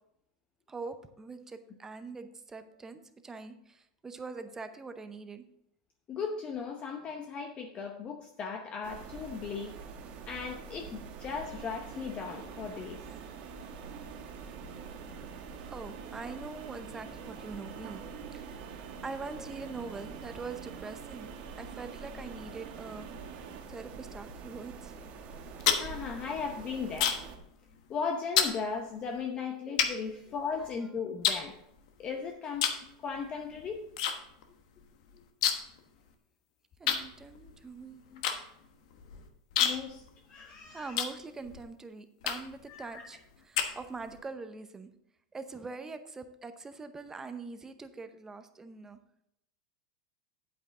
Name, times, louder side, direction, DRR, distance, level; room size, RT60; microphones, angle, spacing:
voice 1, 0.7-5.4 15.3-15.4 15.7-18.0 18.3-21.3 21.6-23.2 23.7-24.9 36.8-38.0 40.7-44.9 45.3-49.0, right 4 dB, 15° right, 9 dB, 0.8 m, -43 dB
voice 2, 6.1-9.8 10.3-13.0 25.7-27.2 27.9-31.6 32.0-32.7 33.0-33.8 38.1-38.2 39.6-40.0 40.3-41.0 42.7-43.1, left 5 dB, 30° left, 3 dB, 0.9 m, -37 dB
sound 1, 8.8-27.4, right 5 dB, 45° right, 1.3 m, -46 dB
sound 2, 11.2-23.6, right 8 dB, 75° right, 1.4 m, -49 dB
sound 3, 25.3-27.4 27.7-28.0 28.4-28.6 29.2-29.3 29.8-30.7 31.2-32.1 32.5-32.9 33.2-34.1 34.4-34.5 34.8-35.8 36.1-36.2 36.9-41.6 42.2-42.6 43.1-44.2, left 8 dB, 70° left, 1.2 m, -30 dB
8.7 x 8.5 x 3.8 m, 0.78 s
supercardioid pair, 130°, 4 cm